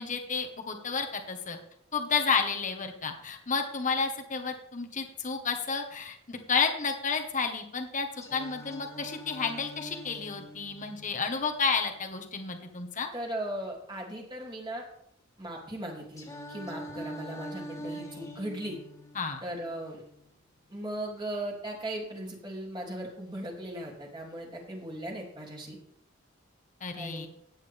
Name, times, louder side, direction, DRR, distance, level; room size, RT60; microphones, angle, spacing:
voice 1, 0.0-1.6 1.9-13.1 19.1-19.4 26.8-27.3, left 5 dB, 40° left, 4 dB, 1.5 m, -31 dB
Singing, 8.2-12.2 16.2-20.2, equal, 15° left, 2.5 m, -44 dB
voice 2, 13.1-14.9 15.4-18.8 19.4-20.0 20.7-25.8 26.9-27.3, right 1 dB, 25° right, -1 dB, 3.0 m, -38 dB
14.0 x 9.5 x 3.6 m, 0.71 s
head